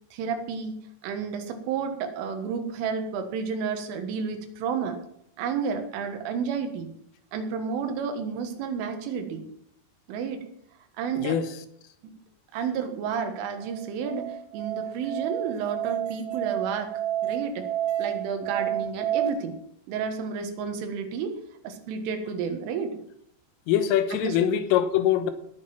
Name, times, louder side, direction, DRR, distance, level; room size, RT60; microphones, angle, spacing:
voice 1, 0.1-5.0 5.4-6.9 7.3-9.4 10.1-10.5 11.0-11.4 12.5-16.9 17.2-17.7 18.0-19.6 19.9-21.4 21.6-23.0 24.1-24.4, right 6 dB, 80° right, 4.1 m, -31 dB
Musical instrument, 13.6-19.3, right 11 dB, 65° right, 3.6 m, -30 dB
voice 2, 23.7-25.3, left 10 dB, 90° left, 3.7 m, -23 dB
18.5 x 7.8 x 5.9 m
omnidirectional pair, 5.7 m